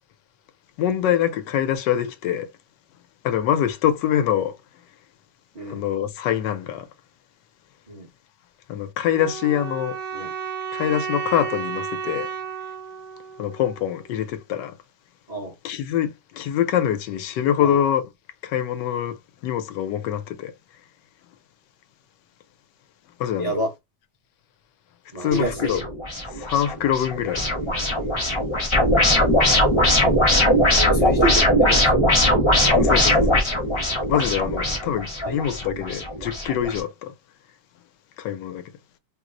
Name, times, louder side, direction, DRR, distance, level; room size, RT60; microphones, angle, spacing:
voice 1, 0.8-2.5 3.2-4.6 5.7-6.9 8.7-10.0 10.7-12.3 13.4-14.7 15.6-18.1 18.4-19.2 19.4-20.5 23.2-23.6 25.2-25.8 26.3-27.4 32.7-33.4 34.1-37.1 38.2-38.6, left 10 dB, 80° left, 1.2 m, -24 dB
sound 1, 9.1-14.2, right 6 dB, 70° right, 1.2 m, -33 dB
voice 2, 23.4-23.7 25.1-25.9 29.9-30.2 30.7-32.0 35.2-35.4, right 2 dB, 35° right, 0.6 m, -28 dB
sound 2, 25.3-36.8, left 1 dB, 25° left, 0.7 m, -20 dB
3.1 x 2.0 x 3.5 m
omnidirectional pair, 1.9 m